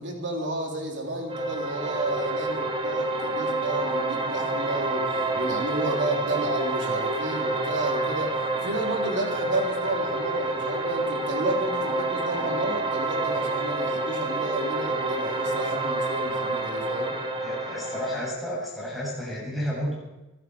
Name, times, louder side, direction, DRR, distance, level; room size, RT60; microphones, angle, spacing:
voice 1, 0.0-17.1, right 1 dB, 55° right, 0 dB, 3.7 m, -31 dB
sound 1, 1.3-18.3, right 2 dB, 25° right, 1.8 m, -28 dB
voice 2, 17.4-19.9, equal, ahead, -5 dB, 7.8 m, -31 dB
25.0 x 12.5 x 4.7 m, 1.0 s
head